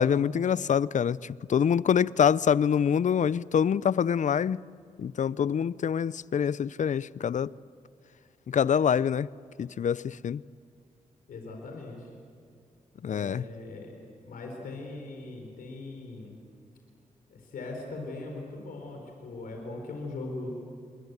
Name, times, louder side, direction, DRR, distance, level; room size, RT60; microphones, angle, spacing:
voice 1, 0.0-4.6 5.0-7.5 8.5-9.3 9.6-10.4 13.0-13.5, left 8 dB, 60° left, 0.6 m, -25 dB
voice 2, 11.3-12.1 13.1-14.0 14.2-16.4 17.3-20.5, left 2 dB, 85° left, 4.4 m, -40 dB
28.0 x 23.0 x 8.2 m
cardioid pair, 60°, 14 cm